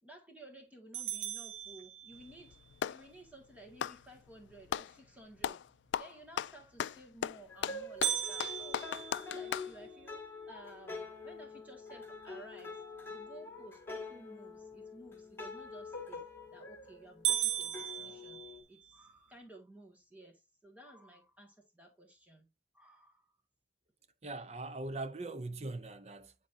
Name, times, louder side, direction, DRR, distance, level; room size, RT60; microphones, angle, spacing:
voice 1, 0.0-2.6 2.9-5.6 6.0-12.8 13.1-16.2 16.5-23.4, right 1 dB, 10° right, 1.9 m, -55 dB
sound 1, 0.9-2.5 8.0-10.2 10.7-10.8 11.3-11.4 12.0-12.4 16.0-16.4 16.8-16.9 17.2-19.0, right 10 dB, 85° right, 0.8 m, -37 dB
Clapping, 2.1-3.1 3.7-4.9 5.4-5.7 5.9-9.7, left 9 dB, 85° left, 0.3 m, -37 dB
sound 2, 7.5-18.6, left 3 dB, 15° left, 2.1 m, -46 dB
voice 2, 24.2-26.3, right 2 dB, 35° right, 0.6 m, -41 dB
9.9 x 4.3 x 2.7 m
head